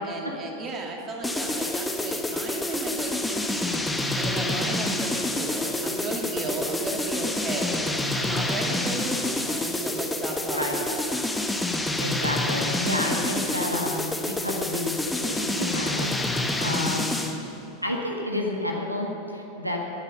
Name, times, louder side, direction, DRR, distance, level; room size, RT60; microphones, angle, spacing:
voice 1, 0.0-3.8 4.2-7.8 8.1-11.3 16.6-16.8, right 2 dB, 30° right, 1 dB, 2.2 m, -34 dB
sound 1, 1.2-17.4, left 2 dB, 5° left, 1.2 m, -28 dB
voice 2, 12.0-17.4 17.8-19.8, left 1 dB, 90° right, 1 dB, 1.6 m, -30 dB
20.0 x 8.9 x 6.7 m, 2.9 s
figure-of-eight pair, 90°, 0 cm